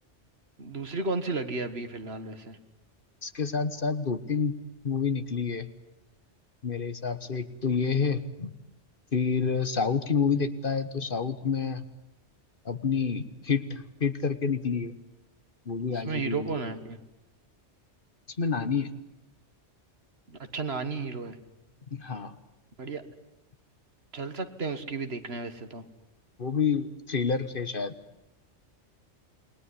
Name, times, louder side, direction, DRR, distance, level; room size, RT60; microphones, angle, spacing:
voice 1, 0.6-2.6 15.9-17.0 20.3-21.4 22.8-23.0 24.1-25.8, right 4 dB, 60° right, 10 dB, 1.9 m, -33 dB
voice 2, 3.2-4.6 4.8-5.7 6.6-8.5 9.1-11.8 12.6-14.9 15.7-16.6 18.4-18.9 21.9-22.3 26.4-27.9, left 5 dB, 50° left, 12 dB, 1.4 m, -28 dB
28.5 x 21.0 x 9.9 m, 0.91 s
omnidirectional pair, 1.2 m